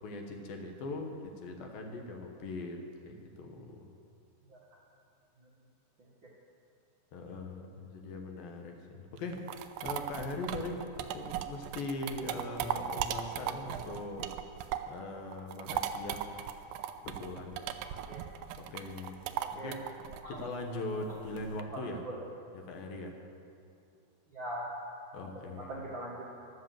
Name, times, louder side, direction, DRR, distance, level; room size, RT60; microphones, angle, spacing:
voice 1, 0.0-2.8 3.1-3.9 7.1-14.3 14.9-16.3 17.0-17.6 18.6-19.2 19.5-19.8 20.3-22.0 22.5-23.2 25.1-25.8, left 2 dB, 70° left, 3 dB, 2.8 m, -40 dB
sound 1, 9.2-15.0 15.3-21.6, right 10 dB, 85° right, 2.0 m, -37 dB
voice 2, 17.8-18.2 19.4-19.8 20.2-20.4 21.7-22.2 24.3-24.8 25.1-26.3, right 1 dB, 55° right, -5 dB, 1.3 m, -42 dB
13.0 x 11.5 x 7.5 m, 2.5 s
omnidirectional pair, 4.6 m